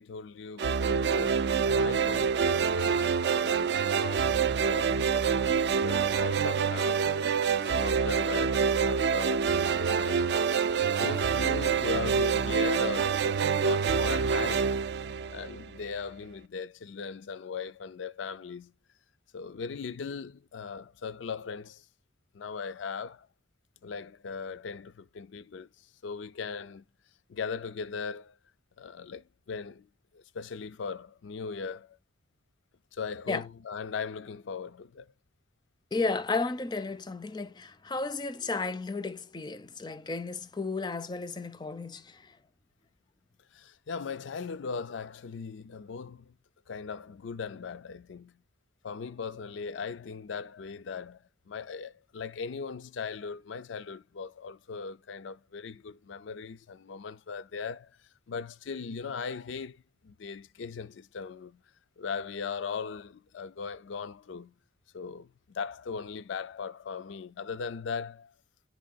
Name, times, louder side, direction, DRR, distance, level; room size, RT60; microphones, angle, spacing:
voice 1, 0.0-7.1 7.5-9.5 9.9-10.5 10.9-14.8 15.3-18.7 19.3-21.8 22.3-23.3 23.8-25.7 26.0-26.8 27.3-28.4 28.8-29.9 30.1-32.0 32.9-35.1 43.5-46.3 46.7-48.4 48.8-57.9 58.3-61.6 62.0-64.5 64.9-68.3, left 5 dB, 85° left, 0.4 m, -39 dB
sound 1, 0.6-15.8, right 6 dB, 60° right, 0.3 m, -26 dB
voice 2, 35.9-42.4, left 3 dB, 25° left, 0.4 m, -33 dB
11.0 x 3.7 x 2.4 m
head